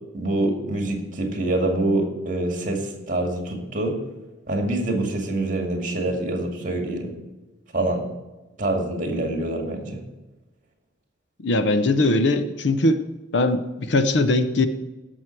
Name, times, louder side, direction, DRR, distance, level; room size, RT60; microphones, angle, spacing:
voice 1, 0.1-4.0 4.5-7.1 7.7-8.0 8.6-10.0, right 2 dB, 40° right, 2 dB, 2.2 m, -25 dB
voice 2, 11.4-13.0 13.3-14.7, left 2 dB, 65° left, 10 dB, 0.8 m, -20 dB
16.0 x 6.3 x 4.7 m, 1.1 s
head